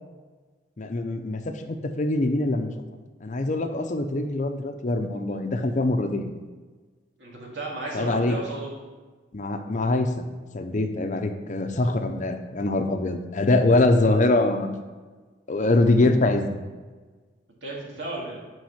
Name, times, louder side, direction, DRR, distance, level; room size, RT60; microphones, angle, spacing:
voice 1, 0.8-2.7 3.2-6.3 7.9-8.4 9.3-10.2 10.5-14.7 15.5-16.5, left 2 dB, 45° left, 7 dB, 0.6 m, -23 dB
voice 2, 7.2-8.7 17.6-18.4, right 2 dB, 85° right, -3 dB, 2.2 m, -34 dB
6.1 x 5.5 x 5.7 m, 1.4 s
head